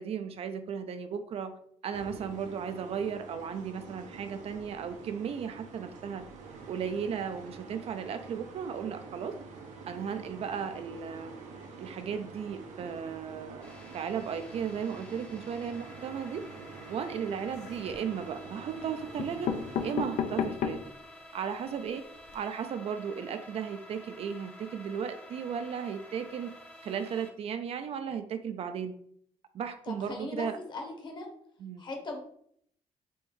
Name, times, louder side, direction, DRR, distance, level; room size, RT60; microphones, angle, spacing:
voice 1, 0.0-1.6 1.8-6.3 6.7-9.3 9.9-11.3 11.8-16.4 16.9-19.5 19.8-20.8 21.3-22.0 22.3-26.5 26.8-28.9 29.5-30.6 31.6-31.8, right 7 dB, 55° right, 9 dB, 0.4 m, -35 dB
sound 1, 1.9-19.9, right 4 dB, 85° right, 0.7 m, -47 dB
Radio E Pitched Noise, 13.6-27.3, left 1 dB, 10° left, 0.8 m, -51 dB
sound 2, 17.4-18.1 18.8-18.9 19.2-21.0 21.5-21.6 21.8-21.9 22.2-22.3, left 7 dB, 80° left, 0.5 m, -33 dB
voice 2, 29.9-31.3 31.8-32.2, left 2 dB, 40° left, 3 dB, 0.9 m, -39 dB
4.4 x 2.6 x 3.5 m, 0.66 s
cardioid pair, 140°, 12 cm